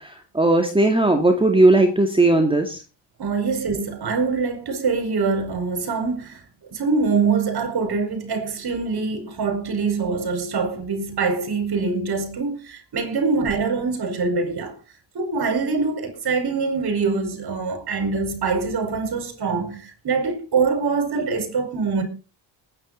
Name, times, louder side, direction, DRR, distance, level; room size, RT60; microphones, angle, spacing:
voice 1, 0.0-2.8, right 2 dB, 10° right, 2.3 m, -17 dB
voice 2, 3.2-6.4 6.7-14.7 15.2-22.0, right 4 dB, 50° right, 5.2 m, -24 dB
20.0 x 9.8 x 4.1 m
cardioid pair, 95°, 48 cm